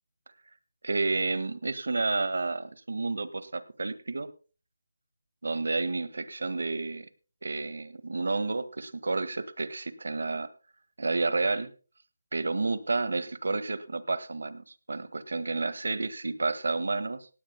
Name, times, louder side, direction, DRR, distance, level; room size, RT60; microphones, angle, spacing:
voice 1, 0.8-4.3 5.4-7.1 7.4-10.5 11.0-11.7 12.3-17.3, right 3 dB, 55° right, 15 dB, 1.6 m, -30 dB
18.0 x 16.5 x 2.2 m, 0.34 s
figure-of-eight pair, 180°, 0 cm